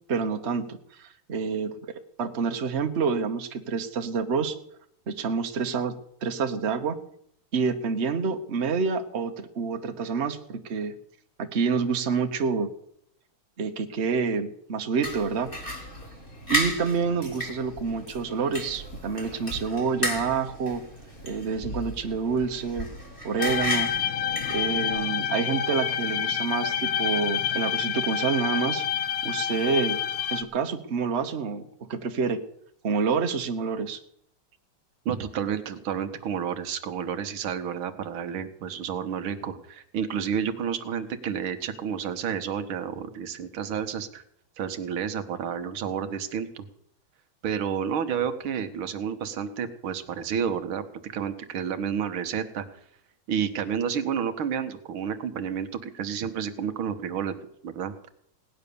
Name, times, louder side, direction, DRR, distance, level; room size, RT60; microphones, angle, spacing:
voice 1, 0.1-4.6 5.1-6.0 6.2-7.0 7.5-10.9 11.4-12.7 13.6-15.5 16.5-20.8 21.2-22.9 23.2-23.9 24.5-28.8 29.2-30.0 30.3-32.4 32.8-34.0, right 5 dB, 40° right, 6 dB, 1.3 m, -28 dB
sound 1, 15.0-25.1, equal, 25° left, 3.6 m, -34 dB
sound 2, 23.4-30.4, left 9 dB, 70° left, 1.4 m, -28 dB
voice 2, 35.1-44.2 44.6-46.7 47.4-52.7 53.3-57.4 57.6-57.9, right 7 dB, 90° right, 8 dB, 2.0 m, -30 dB
17.5 x 10.5 x 6.9 m, 0.70 s
omnidirectional pair, 2.2 m